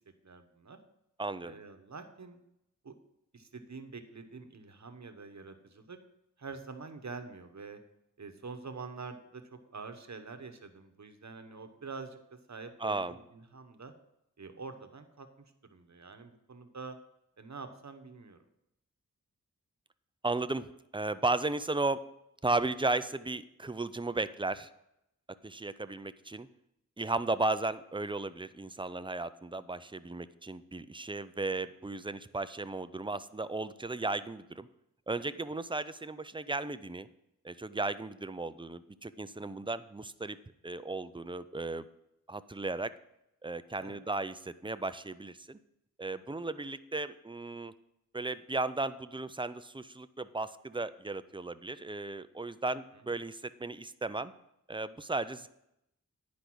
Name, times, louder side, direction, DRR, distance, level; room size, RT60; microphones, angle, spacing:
voice 1, 0.2-0.8 1.4-2.4 2.8-2.9 3.3-6.0 6.4-7.8 8.2-12.2 12.5-13.9 14.4-15.3 15.6-17.0 17.4-18.4 43.8-44.0 52.9-53.1, right 4 dB, 55° right, 7 dB, 1.1 m, -46 dB
voice 2, 1.2-1.6 12.8-13.2 20.2-22.0 22.4-24.7 25.4-26.5 27.0-34.7 35.1-37.1 37.4-40.4 40.6-41.8 42.3-42.9 43.4-45.6 46.0-47.7 48.1-54.3 54.7-55.5, right 2 dB, 15° right, 13 dB, 0.5 m, -35 dB
10.0 x 5.2 x 6.2 m, 0.82 s
wide cardioid pair, 55°, 33 cm